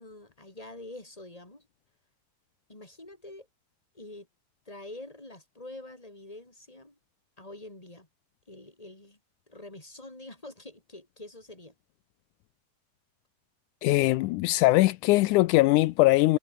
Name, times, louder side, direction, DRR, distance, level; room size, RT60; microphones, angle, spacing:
voice 1, 0.0-1.7 2.7-3.5 3.9-4.3 4.6-7.0 7.4-8.1 8.5-9.2 9.5-11.7, left 2 dB, 10° left, 5.1 m, -46 dB
voice 2, 13.8-16.4, left 19 dB, 85° left, 2.0 m, -21 dB
omnidirectional pair, 3.6 m